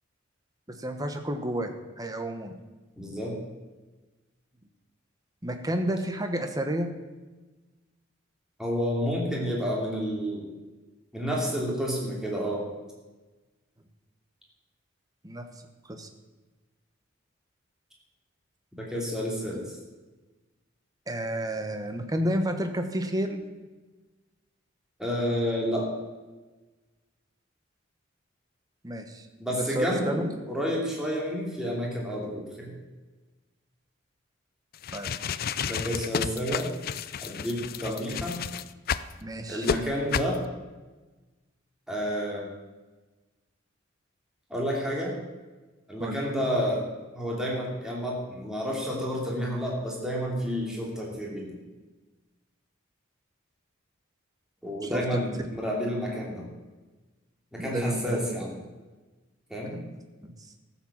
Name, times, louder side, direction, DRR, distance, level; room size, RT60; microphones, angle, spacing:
voice 1, 0.7-2.6 5.4-6.9 15.2-15.5 15.9-16.1 21.1-23.4 28.8-29.3 29.5-30.2 34.9-35.1 37.8-38.0 39.2-39.7 46.0-46.2 54.8-55.2 57.6-58.2 59.7-59.8 60.2-60.3, right 1 dB, 20° right, 6 dB, 1.1 m, -31 dB
voice 2, 3.0-3.4 8.6-10.5 11.1-12.7 18.8-19.6 25.0-25.9 29.4-32.7 35.6-36.7 37.2-38.4 39.5-40.4 41.9-42.4 44.5-45.2 45.9-46.8 47.1-51.5 54.6-56.5 57.5-58.6 59.5-59.8, equal, 5° right, -3 dB, 2.9 m, -30 dB
sound 1, 34.7-39.1 39.6-39.8 40.1-40.4, left 7 dB, 50° left, 0.4 m, -31 dB
13.5 x 7.3 x 7.4 m, 1.2 s
head